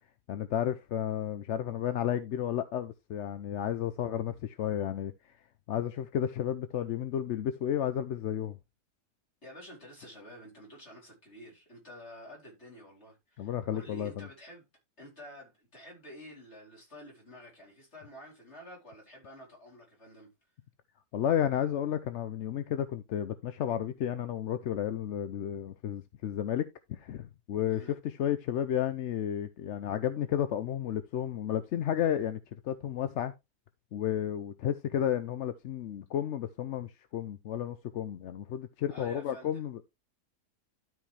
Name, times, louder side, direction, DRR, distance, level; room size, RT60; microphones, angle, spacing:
voice 1, 0.3-5.1 5.7-8.6 13.4-14.3 21.1-27.8 28.2-32.4 32.6-33.3 33.9-39.9, left 10 dB, 65° left, 0.7 m, -32 dB
voice 2, 9.4-14.7 15.0-20.3 27.7-28.0 38.9-39.7, left 1 dB, 40° left, 4.5 m, -50 dB
12.5 x 5.2 x 3.2 m
omnidirectional pair, 1.8 m